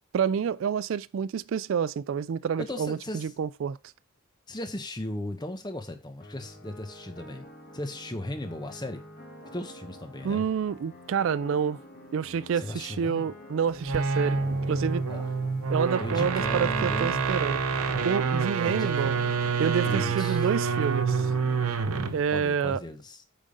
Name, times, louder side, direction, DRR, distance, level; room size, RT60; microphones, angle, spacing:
voice 1, 0.1-3.8 10.2-11.8 12.1-15.0 15.7-17.6 18.0-19.2 19.6-21.3 22.1-22.8, right 7 dB, 60° right, 0.3 m, -28 dB
voice 2, 2.6-3.3 4.5-7.5 7.7-9.0 9.5-10.5 12.5-13.3 14.2-15.3 16.0-17.2 18.6-19.5 19.9-20.5 21.9-23.2, left 1 dB, 20° left, 1.0 m, -37 dB
sound 1, 6.2-22.1, equal, 40° left, 1.9 m, -47 dB
sound 2, 13.8-22.3, right 5 dB, 80° right, 0.8 m, -27 dB
8.6 x 3.7 x 5.3 m
head